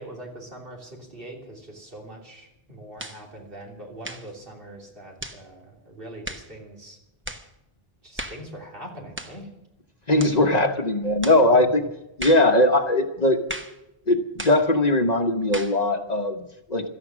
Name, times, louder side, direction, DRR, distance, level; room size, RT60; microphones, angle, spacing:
voice 1, 0.0-7.0 8.0-9.5, right 1 dB, 60° right, -1 dB, 3.4 m, -42 dB
sound 1, 3.0-3.2 4.0-4.3 5.2-5.4 6.2-6.5 7.2-7.5 8.2-8.5 9.2-9.4 10.2-10.4 11.2-11.4 12.2-12.5 13.5-13.8 14.4-14.6 15.5-15.8, right 1 dB, 10° right, 0.9 m, -35 dB
voice 2, 10.1-11.8 12.2-13.4 14.1-16.9, left 1 dB, 40° left, 4 dB, 1.2 m, -20 dB
17.0 x 13.0 x 6.2 m, 0.90 s
omnidirectional pair, 1.1 m